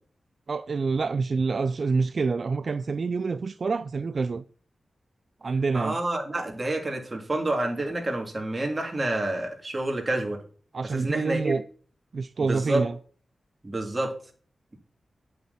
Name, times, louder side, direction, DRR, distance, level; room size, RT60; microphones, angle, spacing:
voice 1, 0.5-4.4 5.4-6.0 10.7-11.6 12.1-13.0, right 4 dB, 55° right, 0.4 m, -27 dB
voice 2, 5.7-10.4 10.9-11.5 12.4-12.9 13.6-14.2, right 1 dB, 25° right, 3.3 m, -28 dB
9.5 x 8.5 x 4.4 m
wide cardioid pair, 90°, 0 cm